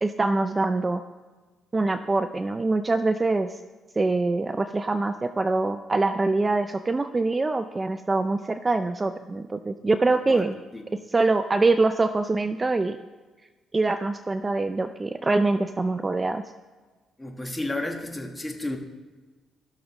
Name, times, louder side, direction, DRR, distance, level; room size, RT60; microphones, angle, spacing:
voice 1, 0.0-1.0 1.7-3.6 4.0-10.6 11.1-13.0 13.7-16.4, right 3 dB, 25° right, 9 dB, 0.4 m, -24 dB
voice 2, 17.2-18.8, left 2 dB, 15° left, 3 dB, 1.4 m, -32 dB
16.0 x 6.4 x 3.0 m, 1.3 s
cardioid pair, 90°, 0 cm